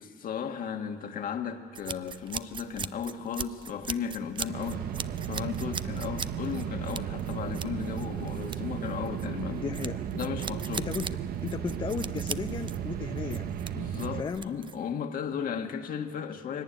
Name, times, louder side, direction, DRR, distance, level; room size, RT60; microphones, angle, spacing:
voice 1, 0.2-4.8 5.2-9.6 10.1-10.9 13.7-16.6, left 7 dB, 55° left, 5 dB, 1.7 m, -35 dB
sound 1, 1.7-14.9, right 6 dB, 30° right, 0.5 m, -40 dB
sound 2, 4.4-14.2, right 9 dB, 65° right, 1.0 m, -35 dB
voice 2, 9.5-10.1 10.8-11.2 11.4-13.5 14.1-14.5, left 5 dB, 30° left, 6 dB, 0.7 m, -35 dB
22.5 x 18.0 x 10.0 m, 2.2 s
cardioid pair, 110°, 17 cm